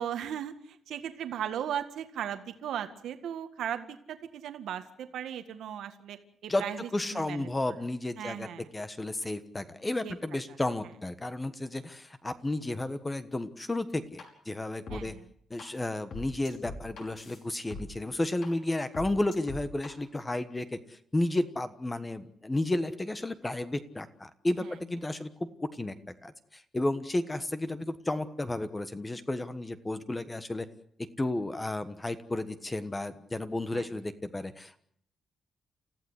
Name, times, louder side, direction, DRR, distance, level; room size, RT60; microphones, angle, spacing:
voice 1, 0.0-6.2 6.4-7.5 8.2-8.7 10.0-10.2 14.9-15.3 24.6-24.8 25.0-25.2 33.7-33.9, right 9 dB, 80° right, 8 dB, 1.8 m, -37 dB
voice 2, 6.9-15.1 15.5-25.3 25.6-26.0 26.2-30.7 31.2-34.8, left 2 dB, 15° left, 11 dB, 1.3 m, -32 dB
sound 1, 14.2-14.3 14.9-15.0 15.6-15.7 16.1-17.8 18.4-18.5 18.9-19.9, left 3 dB, 55° left, 5.5 m, -41 dB
29.0 x 15.5 x 8.1 m, 0.67 s
wide cardioid pair, 175°, 0 cm